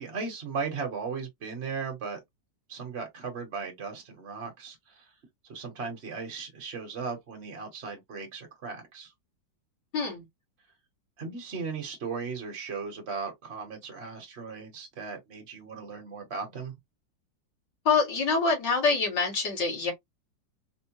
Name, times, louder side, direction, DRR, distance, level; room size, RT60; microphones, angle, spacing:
voice 1, 0.0-2.2 2.7-5.1 5.4-9.1 11.2-16.7, right 5 dB, 45° right, 1.1 m, -37 dB
voice 2, 9.9-10.2 17.9-19.9, left 4 dB, 65° left, 2.2 m, -25 dB
4.3 x 2.1 x 2.9 m
omnidirectional pair, 2.0 m